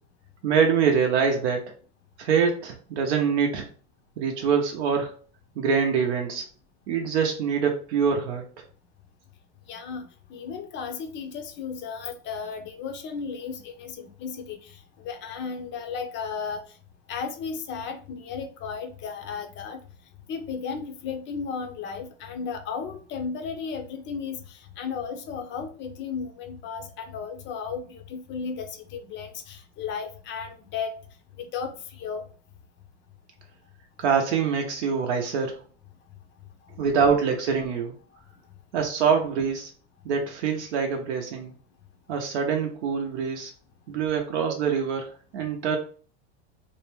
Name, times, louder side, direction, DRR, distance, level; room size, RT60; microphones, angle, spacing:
voice 1, 0.4-1.7 2.2-3.7 4.2-5.2 5.6-6.4 6.9-8.4 34.0-35.6 36.8-37.9 38.7-39.7 40.0-41.5 42.1-43.5 43.9-45.8, right 6 dB, 80° right, 2 dB, 0.6 m, -24 dB
voice 2, 9.7-16.6 17.1-19.8 20.3-30.9 31.4-32.2, left 6 dB, 35° left, 7 dB, 0.4 m, -34 dB
2.6 x 2.1 x 3.0 m, 0.41 s
supercardioid pair, 115°, 33 cm